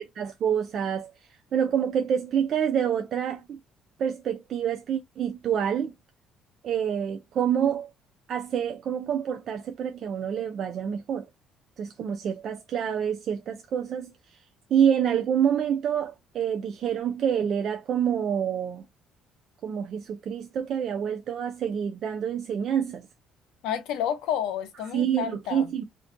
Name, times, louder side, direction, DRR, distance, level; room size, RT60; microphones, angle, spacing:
voice 1, 0.2-1.1 1.5-3.6 4.0-5.9 6.6-7.9 8.3-11.3 11.8-14.1 14.7-18.8 19.6-23.1 24.9-25.8, right 8 dB, 50° right, 0.3 m, -27 dB
voice 2, 23.6-25.7, left 9 dB, 90° left, 0.5 m, -30 dB
2.5 x 2.2 x 2.4 m
cardioid pair, 140°, 0 cm